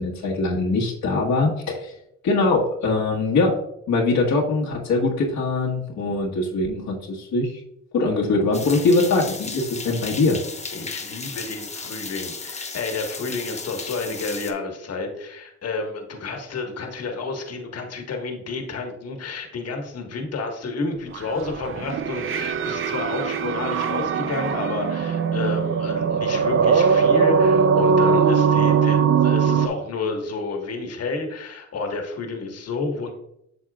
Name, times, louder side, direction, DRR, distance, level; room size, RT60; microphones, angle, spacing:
voice 1, 0.0-1.9 2.2-3.5 3.9-7.6 7.9-10.4, left 3 dB, 75° left, -3 dB, 1.5 m, -22 dB
sound 1, 8.5-14.5, left 4 dB, 20° left, 1.0 m, -35 dB
voice 2, 10.7-33.1, left 3 dB, 55° left, 3 dB, 1.6 m, -30 dB
sound 2, 21.1-29.7, right 6 dB, 45° right, 0.6 m, -20 dB
8.3 x 6.3 x 2.4 m, 0.78 s
cardioid pair, 90°, 30 cm